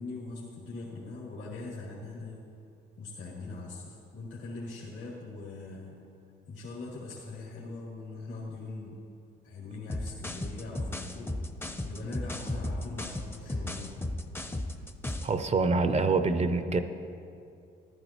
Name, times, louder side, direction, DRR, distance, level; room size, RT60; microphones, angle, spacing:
voice 1, 0.0-2.4 3.0-6.0 6.5-9.0 9.4-11.4 11.8-14.1, left 3 dB, 75° left, -6 dB, 2.4 m, -41 dB
sound 1, 9.9-15.4, left 1 dB, 10° left, 0.6 m, -35 dB
voice 2, 15.2-16.8, right 3 dB, 35° right, 10 dB, 0.6 m, -25 dB
14.5 x 12.0 x 3.0 m, 2.6 s
cardioid pair, 90°, 20 cm